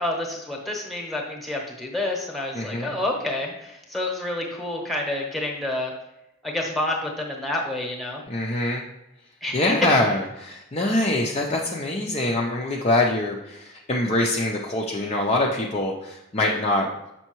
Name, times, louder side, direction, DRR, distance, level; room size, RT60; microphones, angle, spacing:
voice 1, 0.0-5.9 6.4-8.2 9.4-9.6, left 1 dB, ahead, 0 dB, 1.0 m, -29 dB
voice 2, 2.5-3.0 8.3-8.8 9.5-16.9, left 2 dB, 30° left, -1 dB, 0.5 m, -24 dB
6.9 x 5.5 x 3.0 m, 0.89 s
head